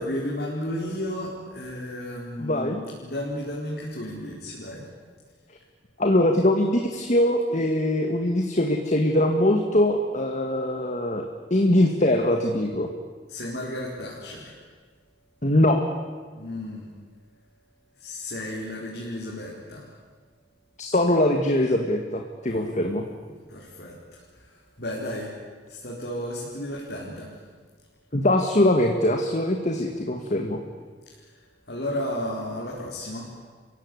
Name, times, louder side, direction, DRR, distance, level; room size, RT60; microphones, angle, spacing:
voice 1, 0.0-4.8 13.3-14.5 16.4-16.9 18.0-19.8 22.5-22.7 23.5-24.0 24.8-25.3 25.7-27.3 31.7-33.2, left 1 dB, 60° left, -4 dB, 4.6 m, -33 dB
voice 2, 2.4-2.8 6.0-11.3 11.5-12.9 15.4-15.8 20.8-23.0 28.1-30.6, left 1 dB, 40° left, 4 dB, 1.9 m, -22 dB
30.0 x 16.5 x 9.8 m, 1.5 s
head